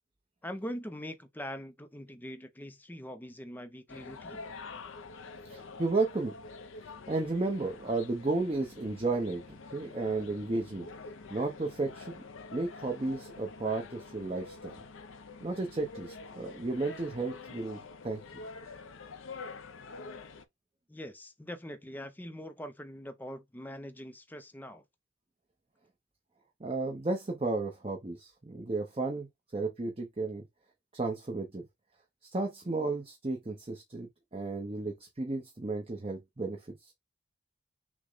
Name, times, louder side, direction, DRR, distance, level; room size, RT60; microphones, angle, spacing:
voice 1, 0.4-4.5 20.9-24.8, equal, 10° left, 0.4 m, -42 dB
sound 1, 3.9-20.4, left 4 dB, 75° left, 0.6 m, -47 dB
voice 2, 5.4-6.3 7.1-9.4 9.7-10.9 11.3-12.2 12.5-14.8 15.4-18.2 26.6-29.3 29.5-30.4 30.9-31.6 32.3-36.9, right 3 dB, 30° right, 0.7 m, -33 dB
6.1 x 2.1 x 3.9 m
head